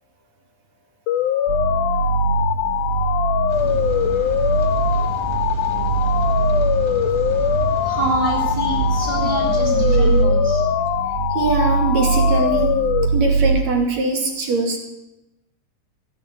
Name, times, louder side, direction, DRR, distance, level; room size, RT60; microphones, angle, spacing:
sound 1, 1.1-13.1, left 11 dB, 90° left, 2.3 m, -22 dB
sound 2, 1.5-13.6, right 5 dB, 85° right, 3.1 m, -22 dB
Rain, 3.5-10.2, left 2 dB, 10° left, 1.3 m, -34 dB
voice 1, 7.8-10.6, right 2 dB, 10° right, -2 dB, 3.6 m, -26 dB
voice 2, 11.3-12.8 13.1-14.8, right 3 dB, 65° right, 2 dB, 3.6 m, -22 dB
16.5 x 8.4 x 8.3 m, 0.96 s
omnidirectional pair, 3.5 m